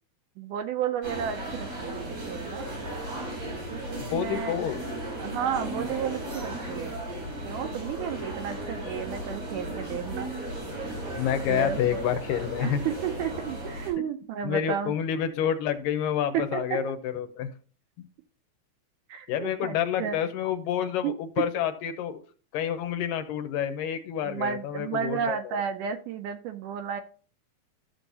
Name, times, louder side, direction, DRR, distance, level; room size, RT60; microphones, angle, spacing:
voice 1, 0.4-2.7 3.7-4.7 5.2-7.0 7.4-10.3 11.5-14.9 16.3-16.8 19.1-20.2 21.0-21.1 24.2-27.0, right 8 dB, 80° right, 8 dB, 1.9 m, -32 dB
sound 1, 1.0-13.9, right 1 dB, 50° right, 5.5 m, -35 dB
voice 2, 4.0-4.8 11.1-12.8 14.4-17.5 18.0-18.1 19.3-22.2 22.5-25.4, left 9 dB, 80° left, 9 dB, 2.3 m, -28 dB
13.5 x 6.3 x 2.7 m, 0.40 s
omnidirectional pair, 4.1 m